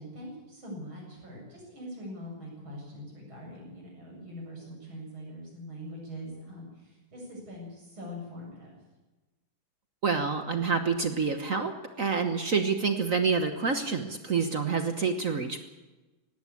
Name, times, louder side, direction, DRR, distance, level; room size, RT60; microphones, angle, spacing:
voice 1, 0.0-8.7, equal, 90° right, -1 dB, 8.4 m, -43 dB
voice 2, 10.0-11.7 12.0-15.6, right 5 dB, 45° right, 7 dB, 1.4 m, -27 dB
18.5 x 17.0 x 8.5 m, 1.1 s
omnidirectional pair, 2.2 m